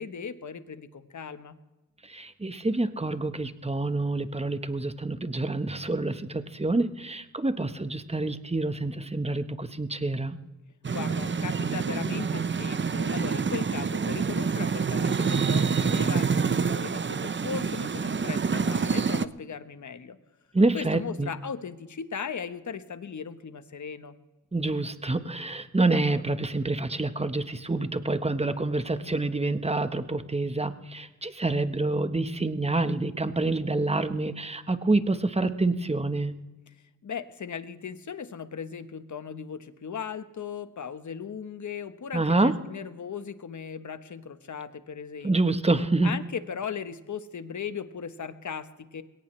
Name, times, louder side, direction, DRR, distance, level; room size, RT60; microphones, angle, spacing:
voice 1, 0.0-1.6 10.9-20.2 20.7-24.2 37.0-45.5 46.0-49.0, left 6 dB, 55° left, 11 dB, 1.2 m, -37 dB
voice 2, 2.0-10.4 20.5-21.3 24.5-36.3 42.1-42.5 45.2-46.2, right 2 dB, 20° right, 10 dB, 1.2 m, -27 dB
sound 1, 10.8-19.3, right 5 dB, 35° right, 0.7 m, -27 dB
21.0 x 17.5 x 3.3 m, 1.1 s
cardioid pair, 55°, 34 cm